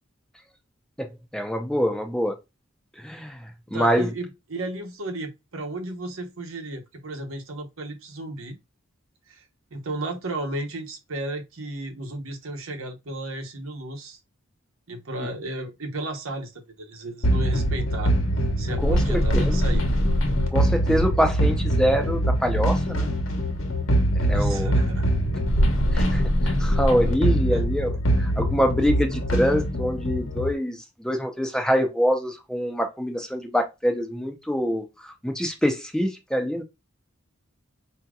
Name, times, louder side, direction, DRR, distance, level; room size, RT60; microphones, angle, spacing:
voice 1, 1.0-2.4 3.0-4.1 18.8-19.6 20.5-23.2 24.2-24.7 25.9-27.9 28.2-36.6, equal, 5° left, 0.6 m, -25 dB
voice 2, 3.7-8.6 9.3-9.4 9.7-14.2 14.9-18.1 18.6-19.9 24.3-25.1 26.0-26.1 27.5-27.6, right 1 dB, 85° right, 1.0 m, -33 dB
sound 1, 17.2-30.5, equal, 70° left, 1.1 m, -23 dB
4.9 x 2.8 x 2.3 m
head